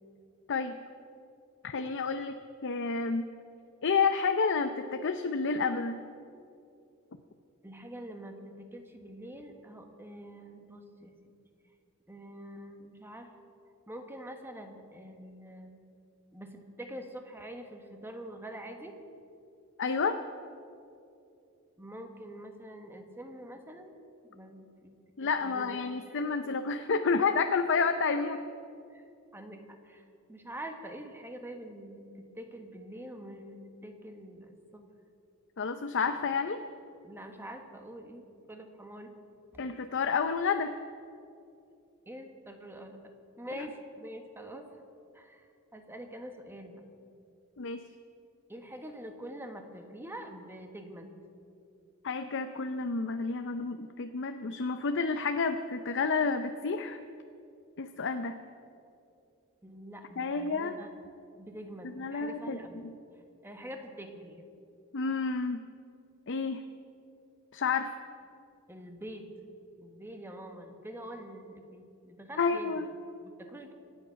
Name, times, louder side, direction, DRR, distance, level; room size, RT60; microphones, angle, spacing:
voice 1, 1.6-2.4 2.6-3.2 3.8-6.0 19.8-20.2 25.2-28.4 35.6-36.6 39.6-40.7 43.6-43.7 47.6-47.8 52.0-57.0 57.8-58.4 60.2-60.7 62.0-62.6 64.9-65.6 66.3-66.6 67.5-67.9 72.4-72.9, left 4 dB, 60° left, 7 dB, 0.6 m, -30 dB
voice 2, 7.6-11.2 12.1-13.3 13.9-15.8 16.3-18.9 21.8-23.9 24.3-24.9 25.2-25.8 26.1-26.2 26.5-26.6 28.9-29.1 29.3-34.8 37.0-39.1 39.5-39.6 42.1-43.0 43.4-44.7 45.1-46.8 48.5-51.1 59.6-60.9 61.4-62.8 63.4-64.5 68.7-69.3 69.8-72.9 73.2-73.7, right 1 dB, 10° right, 5 dB, 1.3 m, -45 dB
25.5 x 8.8 x 5.8 m, 2.6 s
head